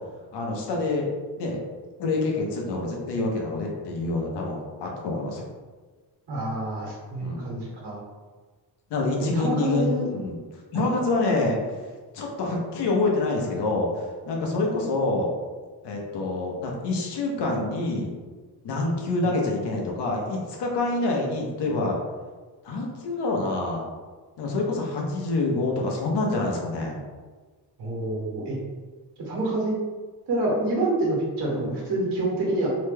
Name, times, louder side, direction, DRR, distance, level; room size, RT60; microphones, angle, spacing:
voice 1, 0.3-1.1 1.4-1.6 2.0-5.4 7.2-7.5 8.9-15.3 15.8-18.1 18.6-22.0 22.6-23.8 24.4-27.0, left 2 dB, 80° left, -1 dB, 0.8 m, -27 dB
voice 2, 6.3-8.0 9.2-10.1 10.7-10.8 27.8-28.6 29.3-29.8 30.3-32.7, right 2 dB, 75° right, -4 dB, 1.1 m, -27 dB
2.9 x 2.2 x 3.2 m, 1.4 s
wide cardioid pair, 175°, 41 cm